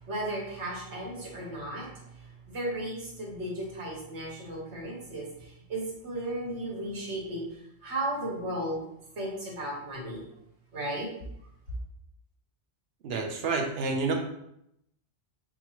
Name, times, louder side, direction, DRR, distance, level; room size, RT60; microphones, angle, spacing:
voice 1, 0.0-7.5 7.8-8.8 9.2-10.2 10.7-11.1, right 1 dB, 85° right, -2 dB, 1.5 m, -35 dB
voice 2, 13.0-14.1, right 4 dB, 65° right, 3 dB, 0.9 m, -29 dB
6.1 x 2.4 x 2.9 m, 0.78 s
omnidirectional pair, 1.1 m